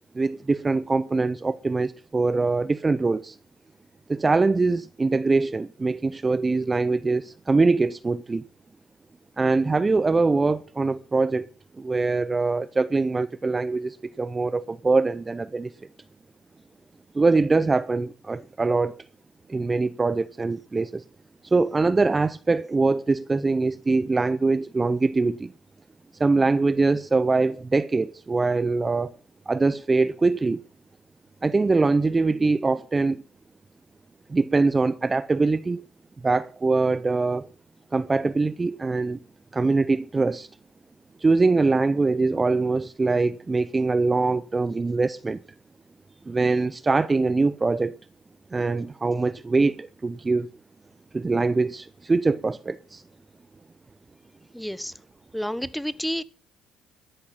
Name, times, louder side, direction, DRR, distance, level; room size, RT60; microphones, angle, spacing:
voice 1, 0.1-3.4 4.1-8.4 9.4-11.5 11.8-15.7 17.1-19.0 19.5-21.0 21.5-25.5 26.2-29.1 29.5-30.6 31.4-33.2 34.3-35.8 36.2-37.5 37.9-39.2 39.5-40.5 41.2-45.4 46.3-47.9 48.5-50.5 51.1-53.0, right 3 dB, 25° right, 0.5 m, -23 dB
voice 2, 54.5-54.9 55.3-56.2, equal, ahead, 1.0 m, -30 dB
13.5 x 11.5 x 5.9 m
supercardioid pair, 85°, 0 cm